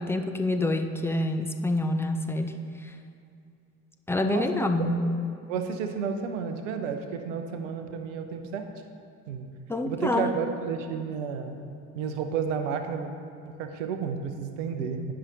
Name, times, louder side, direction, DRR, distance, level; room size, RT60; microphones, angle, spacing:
voice 1, 0.0-2.6 2.8-2.9 4.1-5.0 9.7-10.3, left 2 dB, 5° left, 6 dB, 0.5 m, -27 dB
voice 2, 4.2-4.7 5.0-5.1 5.5-8.7 9.3-9.5 9.9-11.6 11.9-13.1 13.4-15.1, right 6 dB, 70° right, 7 dB, 0.8 m, -32 dB
9.7 x 5.6 x 3.9 m, 2.5 s
figure-of-eight pair, 55°, 39 cm